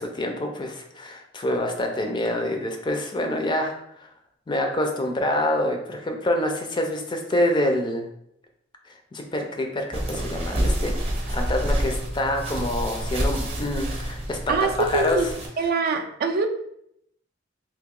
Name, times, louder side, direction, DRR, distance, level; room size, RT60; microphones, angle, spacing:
voice 1, 0.0-4.1 4.5-8.1 9.1-10.9 11.3-15.2, left 1 dB, 25° left, 3 dB, 0.4 m, -26 dB
sound 1, 9.9-15.5, equal, 30° right, 0.7 m, -28 dB
voice 2, 14.5-15.3 15.6-16.5, right 4 dB, 50° right, 5 dB, 0.3 m, -24 dB
2.9 x 2.6 x 3.7 m, 0.75 s
head